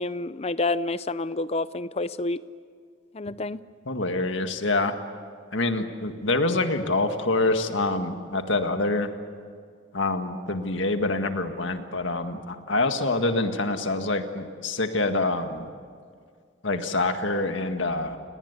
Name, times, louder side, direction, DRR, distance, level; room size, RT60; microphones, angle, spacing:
voice 1, 0.0-2.4 3.1-3.6, left 2 dB, 30° left, 16 dB, 0.6 m, -28 dB
voice 2, 3.9-5.0 5.5-9.1 9.9-15.7 16.6-18.2, left 2 dB, 70° left, 7 dB, 1.8 m, -26 dB
30.0 x 19.5 x 8.3 m, 2.1 s
head